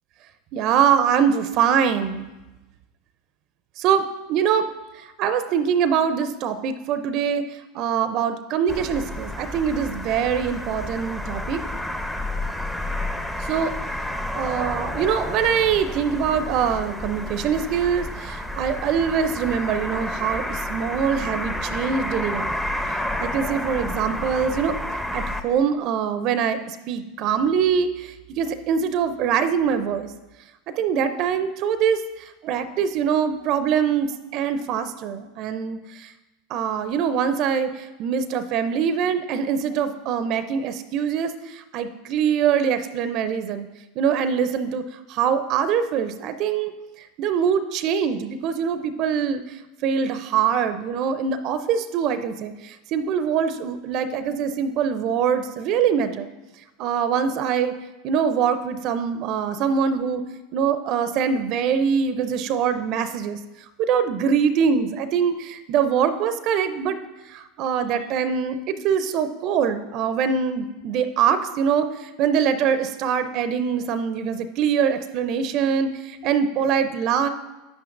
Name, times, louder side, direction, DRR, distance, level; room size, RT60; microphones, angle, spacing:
voice 1, 0.5-2.3 3.8-4.7 5.0-7.4 7.7-11.6 13.5-13.7 14.3-22.5 23.2-24.8 25.1-30.1 30.7-36.1 36.5-43.7 44.0-44.8 45.1-46.7 47.0-49.4 49.8-56.3 56.8-57.7 58.0-60.2 60.5-63.4 63.8-67.0 67.3-77.3, right 7 dB, 50° right, 11 dB, 0.5 m, -23 dB
sound 1, 8.7-25.4, left 1 dB, 5° left, 0.7 m, -30 dB
10.0 x 8.6 x 2.6 m, 1.1 s
hypercardioid pair, 90°, 0 cm